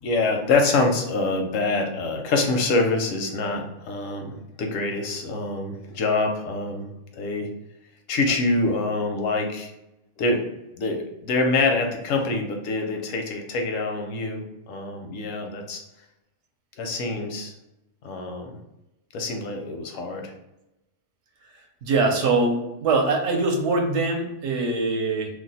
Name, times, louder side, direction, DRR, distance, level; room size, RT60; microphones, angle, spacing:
voice 1, 0.0-6.8 7.1-7.5 8.1-9.7 10.2-10.5 10.8-15.8 16.8-17.5 18.0-18.6 19.1-20.3, left 3 dB, 85° left, 3 dB, 1.0 m, -25 dB
voice 2, 21.8-25.3, right 3 dB, 70° right, 2 dB, 0.9 m, -23 dB
2.6 x 2.1 x 3.9 m, 0.92 s
omnidirectional pair, 1.3 m